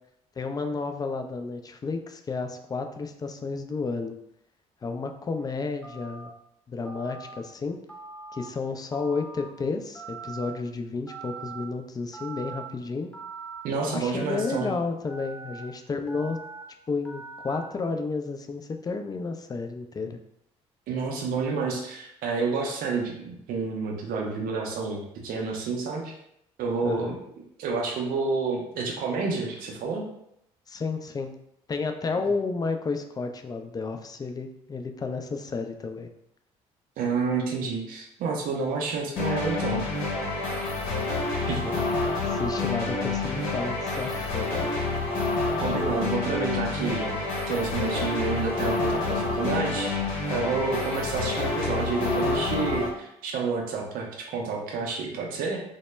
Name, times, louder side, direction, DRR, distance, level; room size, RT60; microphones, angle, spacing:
voice 1, 0.4-4.2 4.8-6.3 6.7-7.8 8.3-13.1 13.9-16.4 16.9-20.2 26.8-27.2 30.7-31.3 31.7-36.1 41.4-41.8 42.1-44.8, left 4 dB, 25° left, 6 dB, 0.3 m, -32 dB
Telephone, 5.8-6.3 6.8-7.4 7.9-8.5 8.9-9.5 9.9-10.5 11.1-11.6 12.1-12.7 13.1-13.6 14.1-14.7 15.1-15.6 16.1-16.6 17.0-17.6, right 4 dB, 5° left, 0.8 m, -41 dB
voice 2, 13.6-14.7 20.9-26.1 26.6-27.2 27.6-30.0 37.0-39.8 41.5-41.7 45.6-50.0 50.3-55.6, right 4 dB, 65° right, 0 dB, 0.5 m, -29 dB
sound 1, 39.2-52.9, left 3 dB, 70° left, 0.8 m, -28 dB
2.1 x 2.1 x 3.2 m, 0.76 s
hypercardioid pair, 55°, 16 cm